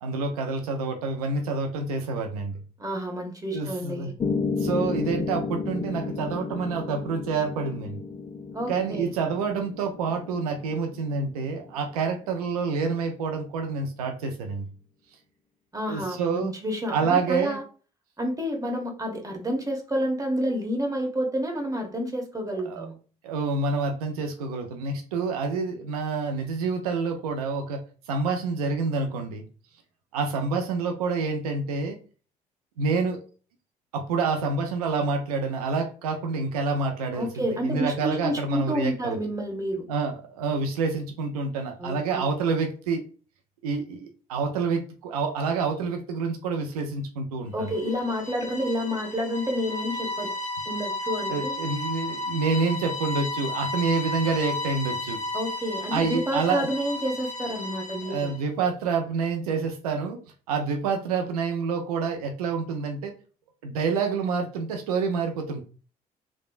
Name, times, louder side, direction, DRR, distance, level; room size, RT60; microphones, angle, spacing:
voice 1, 0.0-2.6 3.5-4.1 4.6-8.0 8.7-14.7 15.9-16.5 16.9-17.6 22.7-22.9 23.2-27.8 28.1-29.5 30.1-32.0 32.8-33.2 33.9-39.2 39.9-43.0 43.6-47.7 51.3-55.2 55.9-56.7 58.1-60.2 60.5-63.1 63.6-65.6, right 4 dB, 90° right, 4 dB, 0.4 m, -28 dB
voice 2, 2.8-4.1 8.5-9.1 15.7-17.6 18.2-22.9 37.1-39.8 41.8-42.3 47.5-50.3 50.7-51.6 55.3-58.3, equal, 20° right, 2 dB, 1.0 m, -29 dB
Piano, 4.2-12.3, left 4 dB, 20° left, 0.3 m, -33 dB
sound 1, 47.6-58.4, left 2 dB, 40° left, 0.8 m, -33 dB
3.2 x 2.1 x 2.4 m, 0.37 s
hypercardioid pair, 50°, 19 cm